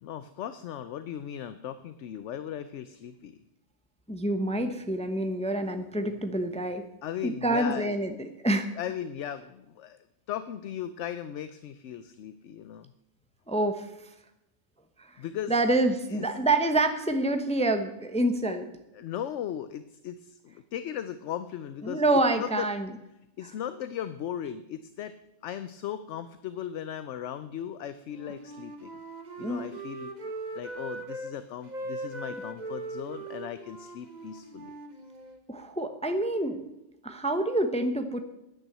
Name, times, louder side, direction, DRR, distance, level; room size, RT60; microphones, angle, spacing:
voice 1, 0.0-3.4 7.0-8.0 8.8-10.0 10.3-12.9 15.2-15.5 16.1-16.3 18.9-22.0 22.4-22.7 23.4-25.2 25.4-28.9 29.4-30.1 30.5-34.7, left 10 dB, 70° left, 13 dB, 0.9 m, -37 dB
voice 2, 4.1-6.8 7.2-8.7 13.5-13.9 15.0-15.1 15.5-18.7 21.8-22.9 29.4-29.7 35.5-36.6 37.0-38.2, right 2 dB, 5° left, 7 dB, 0.8 m, -27 dB
Wind instrument woodwind instrument, 28.0-31.3 31.6-35.4, right 2 dB, 35° right, 1.3 m, -40 dB
10.5 x 9.0 x 8.0 m, 0.90 s
omnidirectional pair, 1.3 m